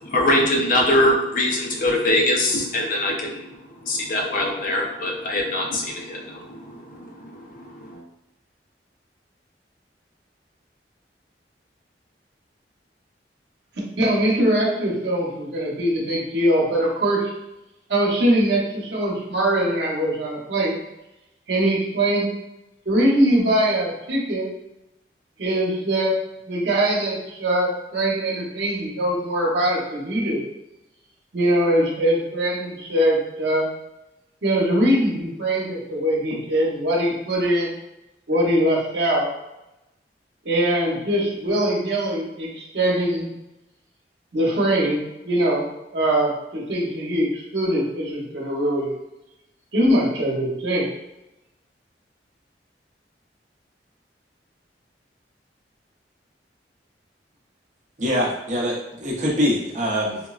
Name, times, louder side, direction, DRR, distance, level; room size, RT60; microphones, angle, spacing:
voice 1, 0.0-3.5 3.9-7.1 7.5-7.6 7.9-8.0, left 1 dB, 50° left, 0 dB, 0.5 m, -22 dB
voice 2, 14.0-17.3 17.9-20.8 21.5-22.3 22.9-24.5 25.4-26.2 26.5-30.4 31.3-33.7 34.4-37.7 38.3-39.3 40.4-43.3 44.3-48.9 49.7-50.9, right 1 dB, 80° right, -4 dB, 0.9 m, -22 dB
voice 3, 58.0-60.2, equal, 45° right, -3 dB, 0.7 m, -23 dB
3.5 x 2.0 x 2.3 m, 0.93 s
head